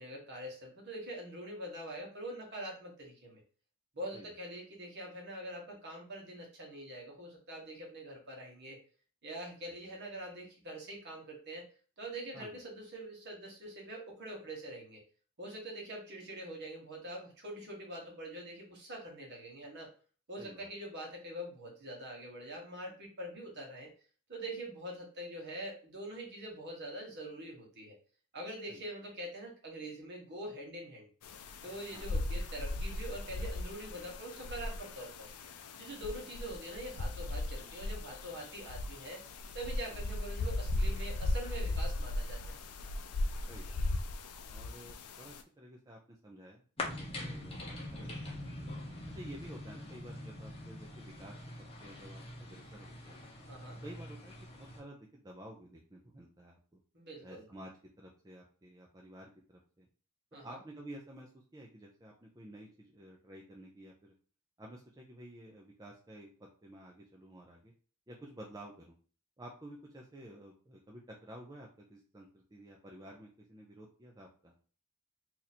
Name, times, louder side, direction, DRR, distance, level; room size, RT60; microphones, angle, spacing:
voice 1, 0.0-3.4 3.9-8.8 9.2-11.6 12.0-15.0 15.4-19.9 20.3-23.9 24.3-28.0 28.3-31.1 31.6-35.3 35.8-39.2 39.5-42.6 53.5-53.8 56.9-57.4 60.3-60.6, right 1 dB, 50° right, -1 dB, 1.2 m, -44 dB
voice 2, 20.4-20.7 28.7-28.8 31.9-32.1 36.1-36.2 39.9-40.0 43.5-44.0 44.5-48.6 49.1-51.4 51.8-53.2 53.8-56.8 57.2-57.7 58.0-59.9 60.4-64.1 64.6-67.7 68.1-69.0 69.4-74.5, right 1 dB, 15° right, -2 dB, 0.5 m, -52 dB
sound 1, 31.2-45.4, left 2 dB, 90° left, 0.4 m, -37 dB
sound 2, 46.8-54.8, left 1 dB, 25° left, 0.8 m, -44 dB
2.8 x 2.6 x 4.2 m, 0.40 s
head